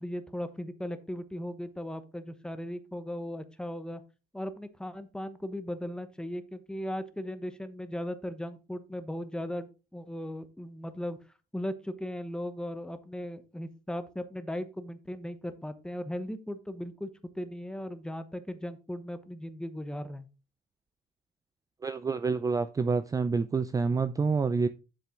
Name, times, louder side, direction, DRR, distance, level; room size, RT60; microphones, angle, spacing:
voice 1, 0.0-4.0 4.3-11.2 11.5-17.1 17.3-20.3, equal, 5° left, 1.0 m, -37 dB
voice 2, 21.8-24.7, right 4 dB, 20° right, 0.4 m, -28 dB
7.5 x 6.7 x 3.7 m
cardioid pair, 110°, 17 cm